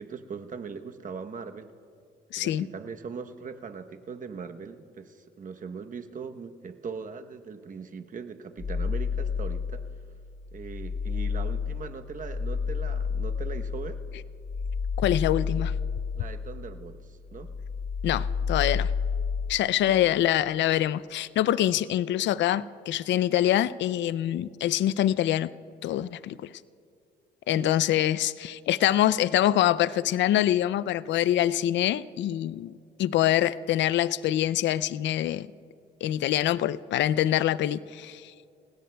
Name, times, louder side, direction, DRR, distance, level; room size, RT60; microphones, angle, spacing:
voice 1, 0.0-1.7 2.4-9.8 10.5-14.0 16.2-17.5 19.9-20.1 27.5-27.7, right 5 dB, 40° right, 7 dB, 0.9 m, -40 dB
voice 2, 2.3-2.7 15.0-15.7 18.0-18.9 19.5-25.5 25.8-26.5 27.5-32.7 33.0-35.5 36.0-38.3, left 12 dB, 65° left, 18 dB, 0.4 m, -25 dB
sound 1, 8.6-10.0 10.4-16.9 17.3-19.5, left 6 dB, 40° left, 3.9 m, -30 dB
29.5 x 17.0 x 2.3 m, 2.4 s
cardioid pair, 90°, 20 cm